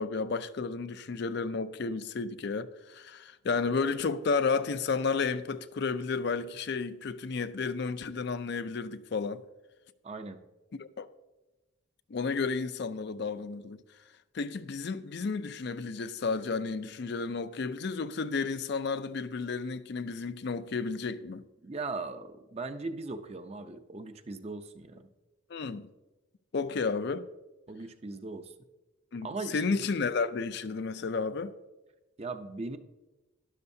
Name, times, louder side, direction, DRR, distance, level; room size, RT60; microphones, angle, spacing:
voice 1, 0.0-9.4 10.8-11.1 12.1-13.8 14.3-21.4 25.5-25.9 26.5-27.3 29.1-31.5, left 4 dB, 55° left, 0.4 m, -32 dB
voice 2, 10.0-10.4 21.6-25.1 27.7-28.5 29.2-29.9 32.2-32.8, right 3 dB, 30° right, 0.6 m, -39 dB
12.5 x 11.5 x 2.7 m
head